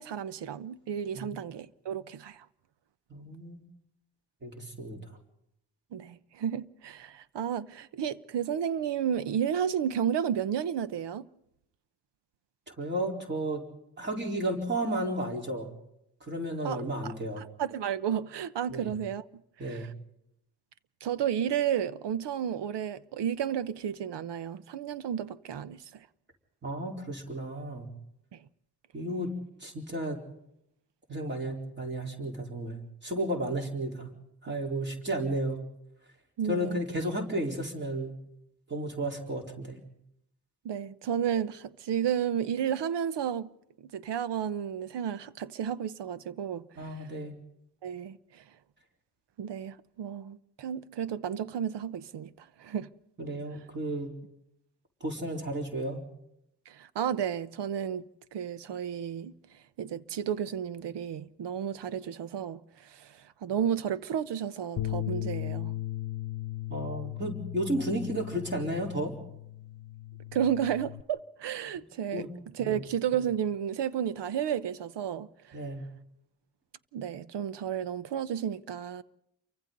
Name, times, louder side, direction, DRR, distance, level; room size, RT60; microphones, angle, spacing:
voice 1, 0.0-2.5 5.9-11.3 16.6-19.2 19.6-19.9 21.0-26.1 28.3-28.5 36.4-36.8 40.6-43.5 43.8-47.1 47.8-48.4 49.4-52.9 56.7-58.0 58.3-65.7 70.3-75.6 76.9-79.0, right 9 dB, 90° right, 1.0 m, -32 dB
voice 2, 3.1-3.6 4.4-5.0 12.7-13.6 14.0-15.7 16.2-17.4 18.7-18.9 19.6-19.9 26.6-27.9 28.9-29.3 29.6-30.2 31.1-34.1 34.4-35.6 36.5-38.1 38.7-39.8 46.8-47.4 53.2-54.1 55.0-56.0 66.7-69.1 72.1-72.3 72.6-72.7 75.5-75.8, right 1 dB, 25° right, 4.3 m, -33 dB
Bass guitar, 64.8-71.0, left 14 dB, 50° left, 0.8 m, -37 dB
29.0 x 24.0 x 4.0 m
wide cardioid pair, 170°, 40 cm